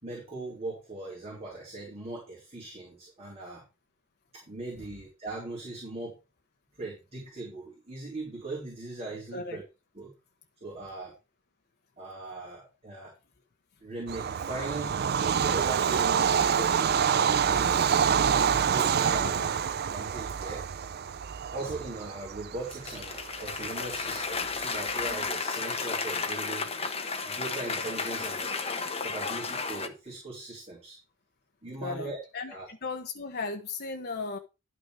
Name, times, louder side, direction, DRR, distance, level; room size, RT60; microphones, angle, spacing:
voice 1, 0.0-3.6 4.3-6.2 6.8-9.6 10.0-10.1 10.6-11.1 12.0-13.2 13.8-15.0 15.4-17.9 18.5-19.5 19.9-20.7 21.5-26.7 27.2-28.4 29.0-31.0 31.6-32.2 32.5-32.7, right 2 dB, 30° right, 3.9 m, -39 dB
Bird vocalization bird call bird song / Train, 14.1-25.3, right 7 dB, 50° right, 0.5 m, -27 dB
Cheering / Applause, 22.7-29.9, left 4 dB, 30° left, 1.2 m, -33 dB
voice 2, 31.8-34.4, left 4 dB, 50° left, 1.1 m, -36 dB
11.5 x 6.1 x 4.9 m
head